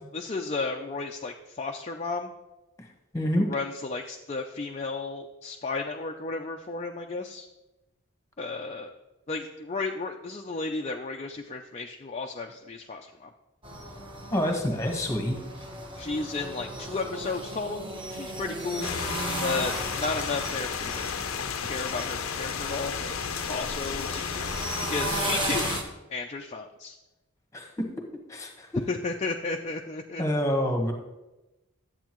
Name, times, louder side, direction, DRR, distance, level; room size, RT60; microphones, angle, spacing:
voice 1, 0.1-2.3 3.4-7.5 8.4-8.9 9.3-13.3 15.6-15.7 16.0-19.0 19.4-21.1 21.6-23.2 23.5-25.8 26.1-27.0 28.9-30.2, left 3 dB, 30° left, 2 dB, 0.5 m, -33 dB
voice 2, 3.1-3.5 14.3-15.4 27.5-27.9 28.3-28.7 30.2-30.9, equal, 15° left, 3 dB, 1.2 m, -27 dB
sound 1, 13.6-25.8, right 1 dB, 25° right, 1.1 m, -36 dB
sound 2, 18.8-25.8, left 7 dB, 80° left, 0.6 m, -33 dB
12.0 x 8.1 x 3.0 m, 1.0 s
head